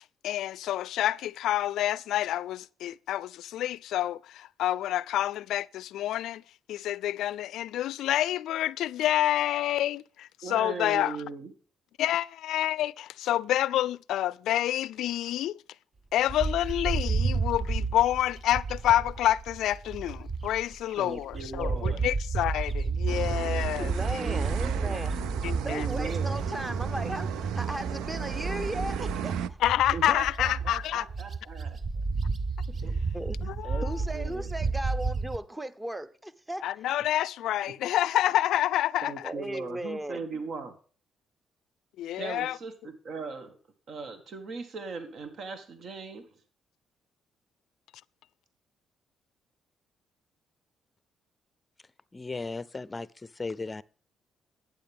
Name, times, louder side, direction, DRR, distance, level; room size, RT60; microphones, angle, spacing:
voice 1, 0.2-6.4 6.7-11.2 12.0-15.6 16.1-23.9 25.2-25.9 29.6-31.0 33.4-33.8 36.6-39.1 42.0-42.6, left 13 dB, 80° left, 0.4 m, -28 dB
voice 2, 10.4-11.5 20.9-22.1 24.2-25.1 25.6-26.4 29.9-31.8 32.7-32.9 33.6-33.9 34.1-34.5 39.0-40.7 42.2-43.6 43.9-46.3, right 4 dB, 60° right, 1.8 m, -38 dB
Bird, 16.3-20.8 21.2-35.4, right 4 dB, 40° right, 0.8 m, -31 dB
sound 1, 23.1-29.5, right 10 dB, 90° right, 0.5 m, -37 dB
voice 3, 23.8-25.2 25.6-29.6 33.1-33.4 33.8-36.7 39.2-40.4, right 1 dB, 10° right, 0.9 m, -36 dB
voice 4, 52.1-53.8, left 3 dB, 25° left, 0.6 m, -36 dB
12.0 x 9.4 x 3.6 m
cardioid pair, 90°, 0 cm